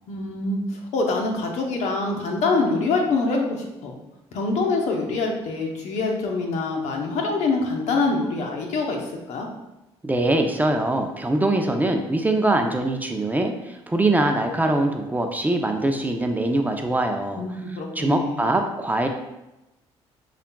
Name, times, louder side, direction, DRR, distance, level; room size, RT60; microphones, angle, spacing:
voice 1, 0.1-4.0 4.3-9.0 9.3-9.5 17.4-18.4, left 3 dB, 70° left, 1 dB, 0.9 m, -25 dB
voice 2, 10.0-17.4 18.0-19.1, right 2 dB, 15° right, 3 dB, 0.5 m, -23 dB
6.7 x 2.4 x 2.2 m, 0.97 s
supercardioid pair, 70°, 12 cm